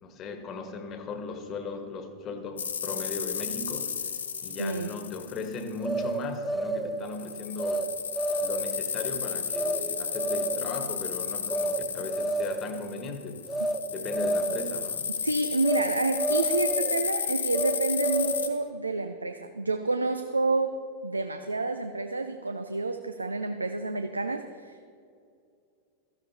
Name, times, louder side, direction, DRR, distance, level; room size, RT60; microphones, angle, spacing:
voice 1, 0.0-4.0 4.4-7.9 8.4-13.5 13.9-15.1, left 3 dB, 30° left, 6 dB, 1.4 m, -37 dB
sound 1, 2.6-5.9 7.1-18.5, left 7 dB, 70° left, 0.8 m, -33 dB
voice 2, 4.6-4.9 15.2-20.8 21.0-24.9, right 2 dB, 80° right, 8 dB, 0.5 m, -29 dB
sound 2, 5.8-6.9 7.6-7.9 8.1-8.8 9.5-9.8 10.1-10.7 11.5-11.8 12.1-12.7 13.5-13.8 14.1-14.7 15.6-17.0 17.5-18.5, right 2 dB, 5° right, 0.7 m, -29 dB
16.5 x 14.0 x 2.8 m, 2.4 s
figure-of-eight pair, 90°, 0 cm